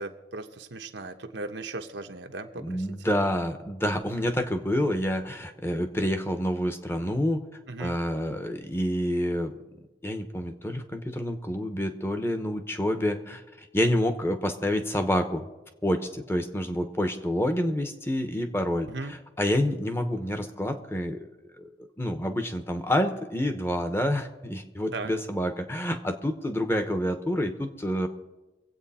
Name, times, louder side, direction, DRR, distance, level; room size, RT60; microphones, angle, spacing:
voice 1, 0.0-2.8 3.1-3.2 7.7-8.0 18.9-19.1 24.9-25.1, right 3 dB, 80° right, 5 dB, 1.1 m, -37 dB
voice 2, 2.6-7.4 7.8-9.5 10.0-13.4 13.7-15.5 15.8-21.3 21.6-21.7 22.0-28.1, equal, 15° left, 7 dB, 1.0 m, -28 dB
25.0 x 8.4 x 4.3 m, 1.1 s
head